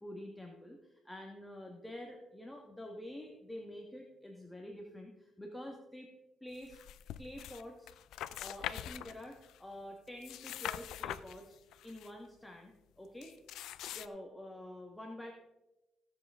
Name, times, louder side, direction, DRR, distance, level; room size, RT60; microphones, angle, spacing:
voice 1, 0.0-6.1 6.4-6.8 7.2-7.9 8.4-11.6 11.8-13.3 13.9-15.3, left 1 dB, 10° left, 1 dB, 1.5 m, -47 dB
sound 1, 6.6-7.6 7.9-9.6 10.1-12.1 13.2-14.1, left 12 dB, 85° left, 0.4 m, -43 dB
16.5 x 7.4 x 3.6 m, 0.97 s
cardioid pair, 90°, 0 cm